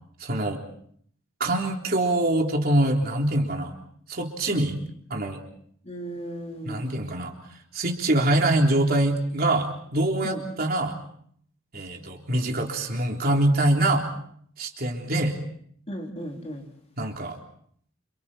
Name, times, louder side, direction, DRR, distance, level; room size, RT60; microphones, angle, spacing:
voice 1, 0.2-0.6 1.4-3.8 4.1-4.8 5.1-5.4 6.6-7.3 7.7-11.0 11.7-14.1 14.6-15.4 17.0-17.4, right 1 dB, 50° right, 1 dB, 3.7 m, -24 dB
voice 2, 5.9-6.9 10.2-10.4 15.9-16.7, equal, 30° left, 1 dB, 4.1 m, -35 dB
29.5 x 28.5 x 4.4 m, 0.64 s
head